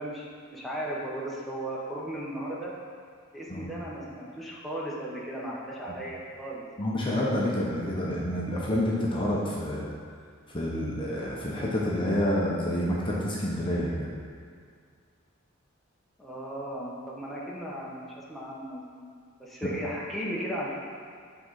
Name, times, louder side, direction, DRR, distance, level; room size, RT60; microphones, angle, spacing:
voice 1, 0.0-2.7 3.3-6.6 16.2-19.1 19.4-20.7, right 1 dB, ahead, -6 dB, 1.0 m, -36 dB
voice 2, 6.8-9.9 10.5-14.1, left 1 dB, 25° left, -5 dB, 0.9 m, -28 dB
7.8 x 3.8 x 4.7 m, 2.1 s
head